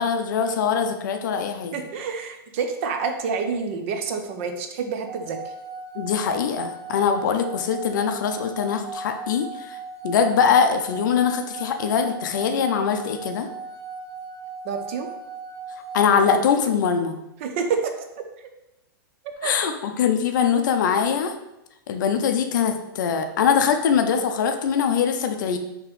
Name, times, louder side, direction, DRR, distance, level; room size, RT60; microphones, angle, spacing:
voice 1, 0.0-1.7 5.9-9.8 10.0-13.5 15.9-17.2 19.4-21.3 21.9-25.6, left 7 dB, 55° left, 7 dB, 0.5 m, -22 dB
voice 2, 1.7-5.4 14.6-15.1 17.4-17.9 19.4-19.5, right 5 dB, 35° right, 5 dB, 0.4 m, -28 dB
sound 1, 5.1-16.3, right 4 dB, 80° right, 1.1 m, -37 dB
5.3 x 2.9 x 3.2 m, 0.88 s
supercardioid pair, 170°, 12 cm